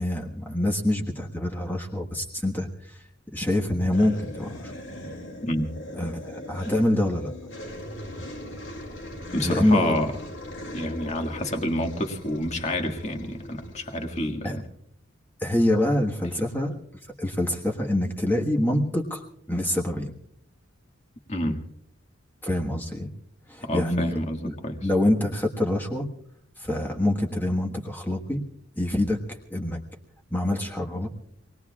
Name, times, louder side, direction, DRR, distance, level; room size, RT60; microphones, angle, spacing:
voice 1, 0.0-3.0 3.3-4.7 5.9-7.3 9.4-9.9 14.4-14.6 15.4-16.8 17.2-19.2 19.5-20.1 22.4-23.1 23.5-24.1 24.4-24.5 24.8-26.1 26.6-28.4 28.8-29.2 29.5-29.8 30.3-31.1, left 1 dB, 10° left, 1 dB, 1.4 m, -25 dB
sound 1, 3.9-14.2, left 1 dB, 70° left, 2.6 m, -39 dB
voice 2, 5.4-5.7 9.3-10.1 10.7-14.6 21.3-21.6 23.6-24.9, left 1 dB, 35° left, 3 dB, 1.9 m, -28 dB
26.5 x 19.5 x 2.4 m, 0.68 s
head